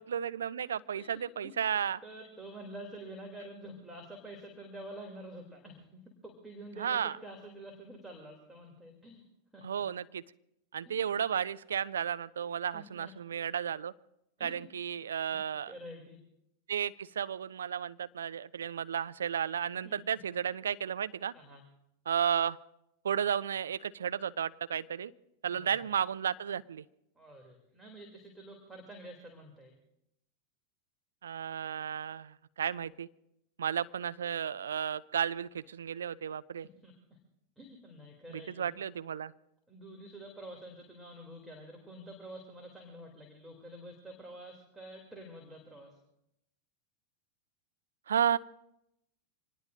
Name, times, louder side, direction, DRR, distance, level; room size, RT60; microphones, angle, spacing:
voice 1, 0.0-2.0 6.8-7.1 9.6-10.2 10.7-13.9 14.4-15.7 16.7-21.3 22.1-22.6 23.0-25.1 25.4-26.8 31.2-33.1 33.6-36.7 38.3-39.3 48.1-48.4, right 8 dB, 65° right, 14 dB, 0.5 m, -33 dB
voice 2, 2.0-9.2 9.5-9.7 10.8-11.0 12.7-13.1 14.4-14.7 15.3-15.4 15.7-16.2 19.8-20.0 21.3-21.6 25.5-25.8 27.1-29.8 36.8-37.0 37.6-38.8 39.7-46.0, right 1 dB, 5° right, 0 dB, 3.0 m, -48 dB
26.0 x 19.5 x 2.6 m, 0.81 s
figure-of-eight pair, 90°, 0 cm